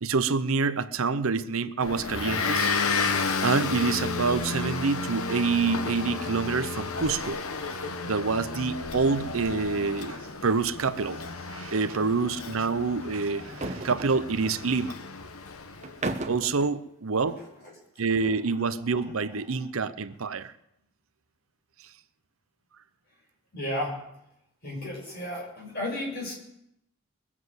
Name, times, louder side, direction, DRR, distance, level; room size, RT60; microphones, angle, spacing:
voice 1, 0.0-3.1 3.4-7.4 8.1-11.2 11.5-15.0 16.3-17.4 18.0-20.5, right 4 dB, 70° right, 13 dB, 0.7 m, -27 dB
Motor vehicle (road) / Engine, 1.8-16.0, left 4 dB, 80° left, 1.1 m, -32 dB
sound 1, 10.9-11.2 11.4-11.5 13.4-14.6 15.8-16.6, right 2 dB, 30° right, 1.1 m, -35 dB
voice 2, 23.5-24.0 24.6-26.4, left 1 dB, 45° left, -2 dB, 6.7 m, -33 dB
22.0 x 7.5 x 7.9 m, 0.79 s
head